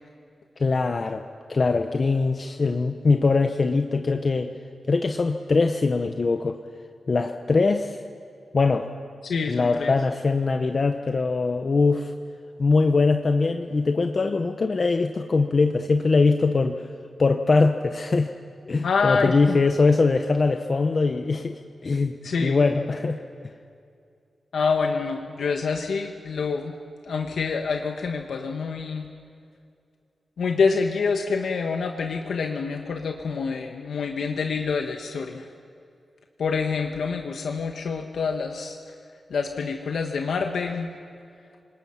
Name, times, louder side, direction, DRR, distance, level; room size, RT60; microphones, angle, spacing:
voice 1, 0.6-1.2 1.5-4.5 4.9-6.6 7.1-8.0 8.5-8.9 9.5-12.1 12.6-16.9 17.2-18.3 18.7-23.2, left 3 dB, 45° left, 6 dB, 0.9 m, -22 dB
voice 2, 9.2-9.9 18.8-19.6 22.2-22.6 24.5-26.7 27.0-29.1 30.4-35.5 36.4-38.8 39.3-40.9, left 5 dB, 90° left, 3 dB, 1.1 m, -26 dB
27.5 x 20.0 x 5.8 m, 2.4 s
wide cardioid pair, 100°, 0 cm